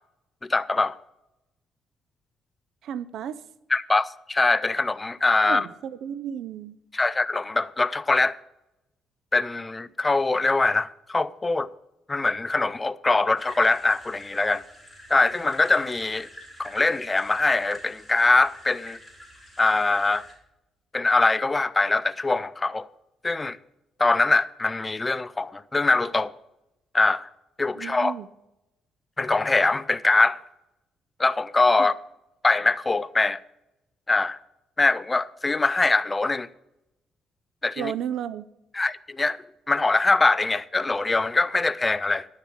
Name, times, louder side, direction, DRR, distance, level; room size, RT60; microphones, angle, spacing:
voice 1, 0.4-1.0 3.7-5.7 6.9-8.4 9.3-11.7 12.1-14.6 15.1-16.3 16.6-19.0 19.6-20.3 20.9-22.9 23.2-23.6 24.0-26.3 26.9-27.3 27.6-28.1 29.2-30.4 31.2-31.9 32.4-33.4 34.1-34.4 34.8-36.5 37.6-37.9 38.7-42.3, left 3 dB, 20° left, 0.4 m, -23 dB
voice 2, 2.8-3.4 5.4-6.8 27.7-28.3 31.8-31.9 37.8-38.4, right 9 dB, 75° right, 0.5 m, -33 dB
sound 1, 13.4-20.3, equal, 5° right, 4.7 m, -47 dB
11.5 x 6.6 x 6.1 m
cardioid pair, 90°, 0 cm